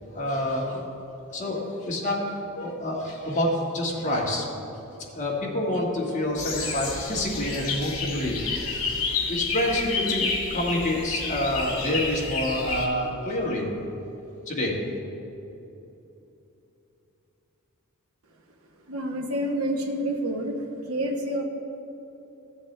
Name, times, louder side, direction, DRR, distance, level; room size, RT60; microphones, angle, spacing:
voice 1, 0.0-0.9 1.3-2.2 2.5-4.5 5.1-13.7 14.5-14.8, left 1 dB, 35° left, -3 dB, 1.7 m, -28 dB
sound 1, 6.4-12.9, left 4 dB, 70° left, 2.0 m, -30 dB
voice 2, 18.9-20.6 20.9-21.4, right 1 dB, 75° right, 3 dB, 1.1 m, -28 dB
15.5 x 7.5 x 3.3 m, 3.0 s
head